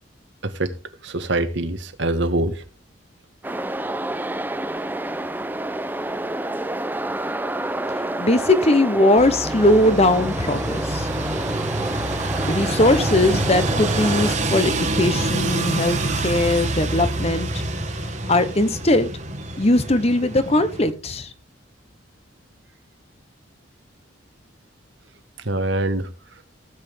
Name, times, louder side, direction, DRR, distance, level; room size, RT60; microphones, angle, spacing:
voice 1, 0.4-0.7 1.0-2.6 25.4-26.1, right 2 dB, 65° right, 1.4 m, -24 dB
sound 1, 3.4-14.4, right 1 dB, 10° right, 0.6 m, -29 dB
voice 2, 8.2-11.1 12.4-17.6 17.9-18.0 18.3-19.1 19.6-21.3, left 1 dB, 30° left, 1.0 m, -20 dB
sound 2, 9.2-20.9, right 2 dB, 40° right, 1.5 m, -26 dB
16.0 x 8.1 x 3.5 m
head